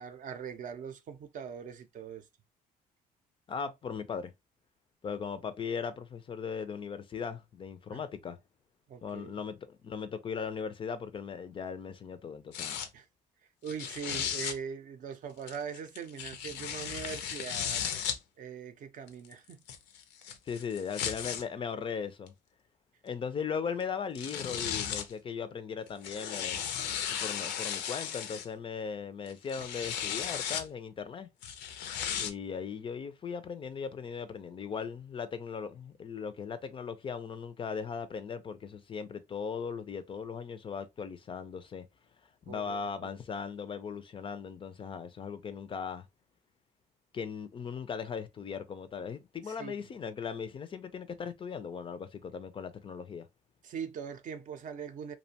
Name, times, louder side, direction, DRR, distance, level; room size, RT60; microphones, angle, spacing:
voice 1, 0.0-2.3 7.9-8.0 8.9-9.3 12.9-13.1 13.6-17.8 18.4-19.6 42.5-43.1 49.4-49.8 53.6-55.1, right 7 dB, 50° right, 0.5 m, -41 dB
voice 2, 3.5-4.3 5.0-8.4 9.0-12.8 20.5-22.3 23.0-26.7 27.2-31.3 32.2-41.9 42.5-46.1 47.1-53.3, left 6 dB, 30° left, 0.3 m, -38 dB
sound 1, 12.5-12.9 13.7-14.6 15.5-18.2 19.1-21.4 22.3-22.4 23.8-23.9 24.2-25.1 25.9-28.5 29.3-30.7 31.4-32.3, left 9 dB, 90° left, 0.5 m, -35 dB
2.5 x 2.1 x 2.7 m
cardioid pair, 110°, 17 cm